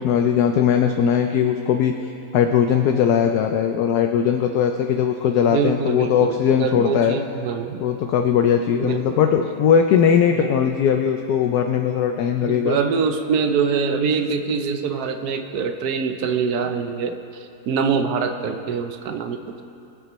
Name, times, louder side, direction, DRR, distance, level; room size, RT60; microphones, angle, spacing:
voice 1, 0.0-1.9 2.3-7.2 7.8-12.8, left 8 dB, 70° left, 5 dB, 1.0 m, -19 dB
voice 2, 5.5-7.8 8.8-9.0 10.3-10.5 12.4-19.4, right 6 dB, 65° right, 7 dB, 1.1 m, -24 dB
22.5 x 8.0 x 3.1 m, 2.7 s
omnidirectional pair, 1.9 m